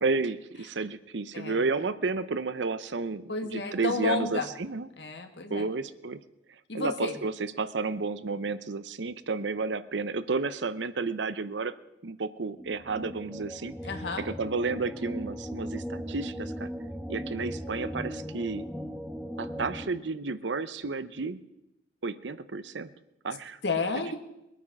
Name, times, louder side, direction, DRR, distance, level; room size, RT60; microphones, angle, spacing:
voice 1, 0.0-4.9 5.5-6.2 6.7-11.7 12.0-13.8 14.2-16.7 17.1-18.6 19.4-21.4 22.0-22.9 23.2-23.6, right 4 dB, 85° right, 14 dB, 0.7 m, -31 dB
voice 2, 3.3-4.5 5.0-5.7 6.7-7.2 13.8-14.2 23.6-24.2, left 3 dB, 75° left, 6 dB, 1.8 m, -31 dB
sound 1, 12.5-19.9, equal, ahead, 0.9 m, -38 dB
22.0 x 9.2 x 5.9 m, 0.90 s
head